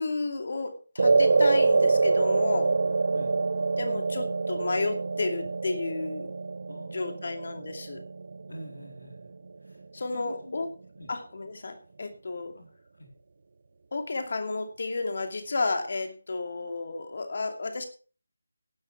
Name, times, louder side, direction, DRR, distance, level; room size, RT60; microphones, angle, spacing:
voice 1, 0.0-2.7 3.8-6.3 6.9-8.0 9.9-10.7 11.1-12.5 13.9-17.8, left 3 dB, 50° left, 5 dB, 2.5 m, -32 dB
sound 1, 1.0-9.5, right 3 dB, 55° right, 0.6 m, -26 dB
voice 2, 6.7-7.4 8.5-9.3 9.6-9.8 10.1-10.6 11.0-11.1 12.5-13.1, equal, 75° left, 2 dB, 3.9 m, -46 dB
17.0 x 11.0 x 3.5 m, 0.37 s
figure-of-eight pair, 160°, 0 cm